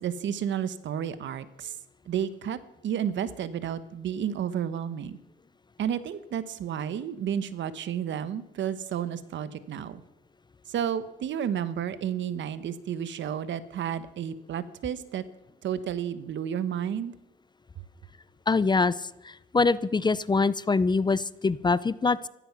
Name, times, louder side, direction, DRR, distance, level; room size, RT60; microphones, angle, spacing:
voice 1, 0.0-1.8 2.1-5.2 5.8-10.0 10.7-15.2 15.6-17.1, right 9 dB, 70° right, 14 dB, 1.1 m, -31 dB
voice 2, 18.5-19.0 19.2-22.3, left 4 dB, 20° left, 18 dB, 0.5 m, -24 dB
15.5 x 13.5 x 6.0 m, 0.86 s
cardioid pair, 90°, 20 cm